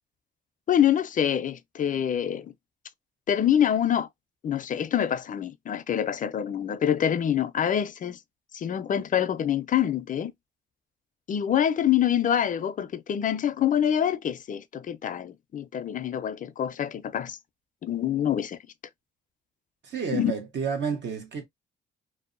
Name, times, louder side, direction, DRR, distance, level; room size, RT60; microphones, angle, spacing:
voice 1, 0.7-2.5 3.3-4.1 4.4-8.2 8.5-10.3 11.3-17.4 17.8-18.6 20.1-20.3, left 9 dB, 40° left, 0.4 m, -26 dB
voice 2, 19.8-21.4, right 6 dB, 65° right, 1.0 m, -30 dB
2.7 x 2.1 x 2.4 m
cardioid pair, 90°, 20 cm